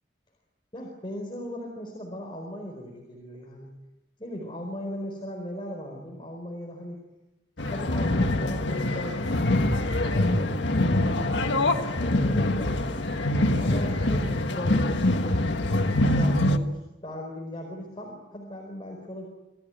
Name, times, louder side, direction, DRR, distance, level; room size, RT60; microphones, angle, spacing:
voice 1, 0.7-3.7 4.2-7.0 7.6-10.5 10.8-13.0 13.6-19.3, equal, 30° left, 0 dB, 4.6 m, -38 dB
sound 1, 7.6-16.6, left 1 dB, 90° left, 1.6 m, -24 dB
26.5 x 16.5 x 9.2 m, 1.0 s
head